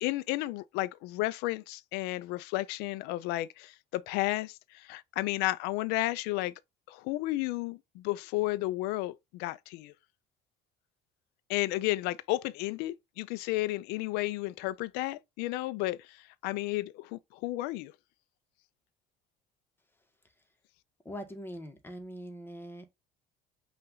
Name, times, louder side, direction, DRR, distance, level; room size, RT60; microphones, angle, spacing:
voice 1, 0.0-6.5 6.9-9.9 11.5-17.9, left 18 dB, 75° left, 0.5 m, -32 dB
voice 2, 21.0-22.9, equal, 15° left, 1.1 m, -42 dB
5.6 x 2.5 x 3.8 m
supercardioid pair, 95°, 17 cm